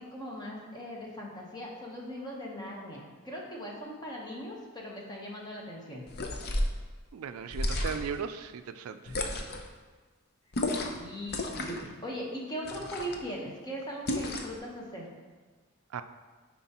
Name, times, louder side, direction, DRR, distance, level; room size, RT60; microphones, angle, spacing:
voice 1, 0.0-6.0 10.9-15.1, equal, 20° left, -2 dB, 1.0 m, -39 dB
sound 1, 6.1-6.8 7.5-8.2 9.1-9.7 10.5-11.0 11.3-11.9 12.6-13.2 14.1-14.6, left 1 dB, 45° left, 0.6 m, -32 dB
voice 2, 7.1-9.2 15.9-16.0, right 6 dB, 85° right, 10 dB, 0.4 m, -37 dB
9.3 x 4.3 x 2.9 m, 1.4 s
head